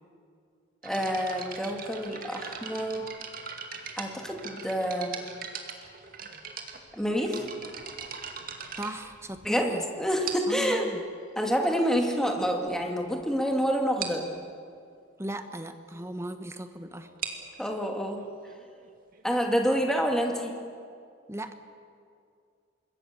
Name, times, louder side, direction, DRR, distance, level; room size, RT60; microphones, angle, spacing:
voice 1, 0.8-3.1 4.0-5.2 6.9-7.4 9.4-9.7 10.0-10.9 11.4-14.2 17.6-18.2 19.2-20.5, equal, 5° left, 2 dB, 2.3 m, -27 dB
sound 1, 0.8-9.7 10.2-10.7 11.5-11.6 12.2-12.3 12.6-12.8 13.1-13.2 13.5-13.6 14.0-14.3 17.0-20.5, right 6 dB, 45° right, 2.2 m, -41 dB
voice 2, 8.8-9.8 10.5-11.0 15.2-17.4 21.3-21.5, right 1 dB, 15° right, 8 dB, 1.1 m, -37 dB
26.0 x 21.5 x 6.9 m, 2.3 s
head